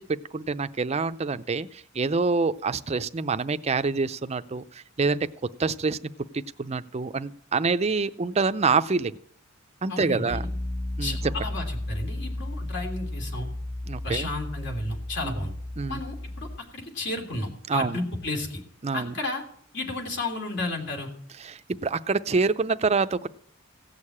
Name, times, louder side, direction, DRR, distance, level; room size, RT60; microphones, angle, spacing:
voice 1, 0.0-5.3 5.6-6.0 6.3-9.1 9.8-10.4 11.0-11.2 13.9-14.3 15.2-15.3 15.8-16.0 17.7-18.0 18.8-19.1 21.4-23.3, right 4 dB, 30° right, 12 dB, 0.5 m, -26 dB
voice 2, 9.9-10.5 11.0-13.5 14.0-15.5 15.9-16.5 16.7-18.6 18.9-19.4 19.7-21.1, left 2 dB, 60° left, 2 dB, 3.2 m, -32 dB
Piano, 10.3-16.6, left 1 dB, 10° left, 1.2 m, -33 dB
16.5 x 6.6 x 8.7 m, 0.63 s
head